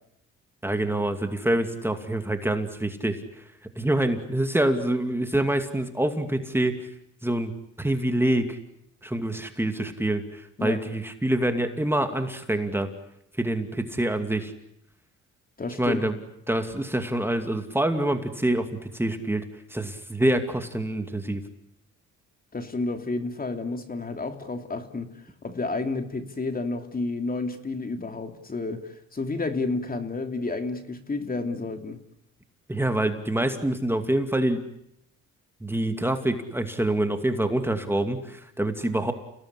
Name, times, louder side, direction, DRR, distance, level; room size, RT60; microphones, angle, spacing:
voice 1, 0.6-3.2 3.8-6.7 7.2-7.5 7.8-8.6 9.0-12.9 13.4-14.5 15.8-16.1 16.5-21.4 32.7-34.6 35.6-39.1, right 1 dB, 5° right, 7 dB, 2.6 m, -26 dB
voice 2, 15.6-16.0 22.5-25.1 25.4-32.0, left 3 dB, 30° left, 7 dB, 2.9 m, -30 dB
29.5 x 18.5 x 9.9 m, 0.78 s
cardioid pair, 90°, 30 cm